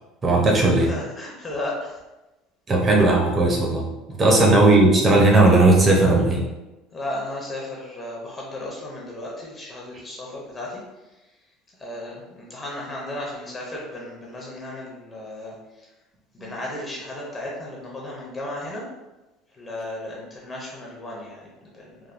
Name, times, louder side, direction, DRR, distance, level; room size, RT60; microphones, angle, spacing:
voice 1, 0.2-0.9 2.7-3.9 4.2-6.5 16.4-16.5, right 2 dB, 25° right, -1 dB, 0.5 m, -17 dB
voice 2, 0.8-2.0 4.2-4.3 6.9-11.2 11.8-15.9 16.3-18.9 19.5-22.0, left 1 dB, 20° left, -3 dB, 0.6 m, -35 dB
3.3 x 2.2 x 2.4 m, 1.0 s
cardioid pair, 140°, 0 cm